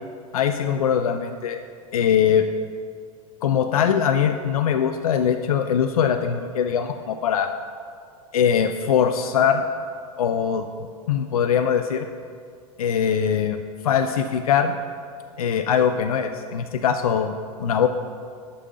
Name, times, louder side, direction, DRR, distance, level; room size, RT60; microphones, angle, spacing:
voice 1, 0.3-1.6 1.9-2.4 3.4-7.5 8.3-9.6 10.2-10.6 11.1-12.1 12.8-13.6 13.8-14.8 15.4-17.3 17.6-17.9, left 8 dB, 75° left, 8 dB, 0.4 m, -21 dB
6.5 x 5.5 x 6.3 m, 2.2 s
figure-of-eight pair, 90°, 19 cm